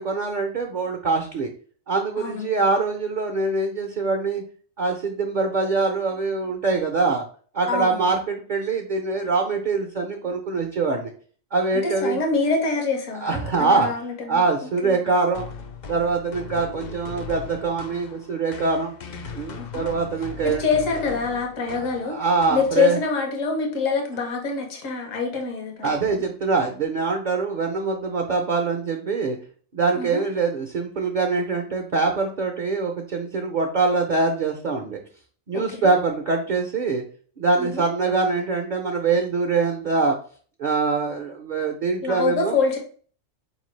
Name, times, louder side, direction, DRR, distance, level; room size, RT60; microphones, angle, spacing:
voice 1, 0.0-1.5 1.9-4.4 4.8-7.2 7.5-11.1 11.5-12.2 13.2-13.9 14.3-15.4 15.9-18.9 19.3-20.6 22.1-23.0 25.8-29.4 29.7-35.0 35.5-37.0 37.4-40.1 40.6-42.6, right 4 dB, 55° right, 3 dB, 0.5 m, -24 dB
voice 2, 2.2-2.6 7.7-8.1 11.7-15.1 19.6-19.8 20.4-22.2 22.5-25.9 29.9-30.2 35.5-35.9 37.6-37.8 42.0-42.8, left 4 dB, 80° left, 2 dB, 1.3 m, -25 dB
sound 1, 15.3-23.2, left 6 dB, 60° left, 0.4 m, -38 dB
4.4 x 3.2 x 3.1 m, 0.44 s
omnidirectional pair, 1.3 m